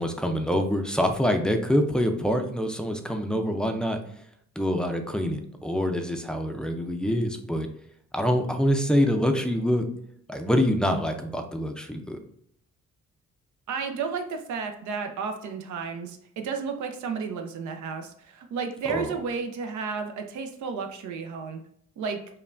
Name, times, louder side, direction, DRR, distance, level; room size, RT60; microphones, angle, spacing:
voice 1, 0.0-4.0 4.6-7.7 8.1-9.9 10.3-12.2 18.8-19.2, equal, 5° left, 4 dB, 0.4 m, -25 dB
voice 2, 13.7-21.6 22.0-22.2, right 5 dB, 70° right, 5 dB, 0.6 m, -32 dB
5.5 x 2.2 x 2.5 m, 0.68 s
cardioid pair, 90°, 30 cm